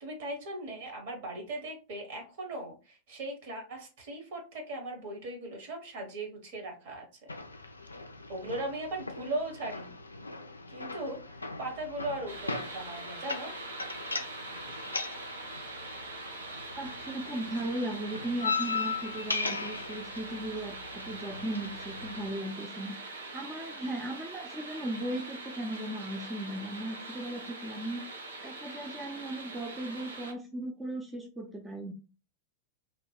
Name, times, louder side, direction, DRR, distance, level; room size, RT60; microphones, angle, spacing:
voice 1, 0.0-7.1 8.3-9.9 10.7-13.5, right 2 dB, 50° right, 3 dB, 1.1 m, -38 dB
sound 1, 7.3-22.3, left 4 dB, 80° left, 0.3 m, -39 dB
sound 2, 12.3-30.3, right 3 dB, 70° right, 0.6 m, -43 dB
voice 2, 16.8-31.9, right 1 dB, 10° right, 1 dB, 0.5 m, -37 dB
2.9 x 2.2 x 3.3 m, 0.33 s
figure-of-eight pair, 90°, 0 cm